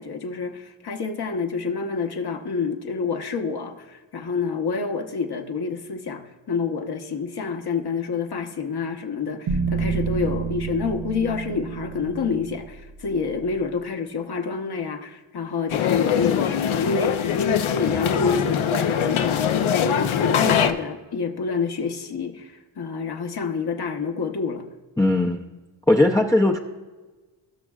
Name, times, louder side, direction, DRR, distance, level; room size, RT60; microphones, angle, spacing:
voice 1, 0.0-6.2 6.5-24.6, left 5 dB, 50° left, 5 dB, 1.1 m, -28 dB
sound 1, 9.5-13.7, right 5 dB, 80° right, 1.1 m, -29 dB
sound 2, 15.7-20.7, left 8 dB, 70° left, 0.8 m, -22 dB
voice 2, 25.0-25.5 25.9-26.6, left 1 dB, 5° left, 0 dB, 0.6 m, -18 dB
18.0 x 6.2 x 2.4 m, 1.2 s
cardioid pair, 65°, 50 cm